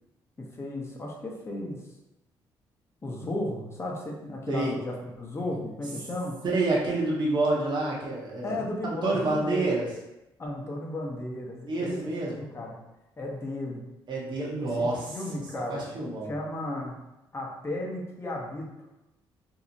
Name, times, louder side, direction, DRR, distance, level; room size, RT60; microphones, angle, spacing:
voice 1, 0.4-1.8 3.0-6.4 8.4-9.7 10.4-12.0 12.2-12.8 13.2-13.8 14.6-15.9 16.3-17.0 17.3-18.7, left 1 dB, 25° left, -2 dB, 0.7 m, -34 dB
voice 2, 6.5-9.9 11.7-12.3 14.1-15.2 15.7-16.3, right 2 dB, 50° right, -4 dB, 0.7 m, -28 dB
2.7 x 2.0 x 2.7 m, 0.96 s
supercardioid pair, 60°, 10 cm